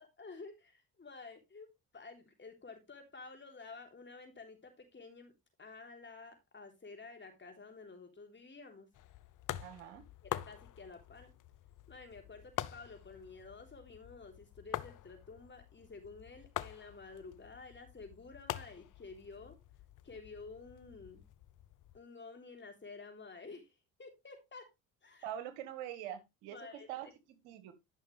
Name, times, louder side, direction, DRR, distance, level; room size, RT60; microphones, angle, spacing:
voice 1, 0.0-5.3 5.6-8.9 10.2-11.3 11.9-19.6 20.0-21.2 21.9-24.7 25.0-25.3 26.5-26.9, left 4 dB, 30° left, 3.6 m, -51 dB
sound 1, 8.9-22.0, left 13 dB, 60° left, 0.7 m, -46 dB
voice 2, 9.6-10.0 25.2-26.6 26.9-27.7, right 11 dB, 85° right, 1.5 m, -44 dB
11.5 x 6.4 x 3.3 m
hypercardioid pair, 60°, 36 cm